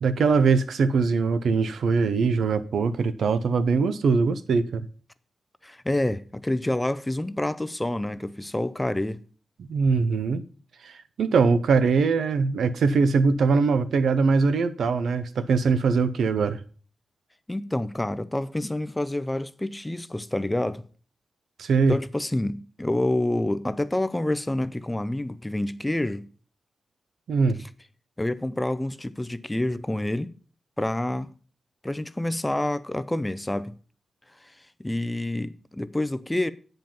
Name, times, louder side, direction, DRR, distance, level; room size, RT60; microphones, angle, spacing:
voice 1, 0.0-4.9 9.6-10.4 10.8-10.9 11.2-16.6 21.6-22.0 27.3-27.6, right 4 dB, 90° right, 0.7 m, -22 dB
voice 2, 5.6-9.2 17.5-20.8 21.9-26.3 28.2-30.3 30.8-31.3 31.8-33.7 34.4-34.5 34.8-36.5, left 1 dB, 10° left, 0.4 m, -28 dB
9.0 x 5.3 x 5.6 m
wide cardioid pair, 165°, 0 cm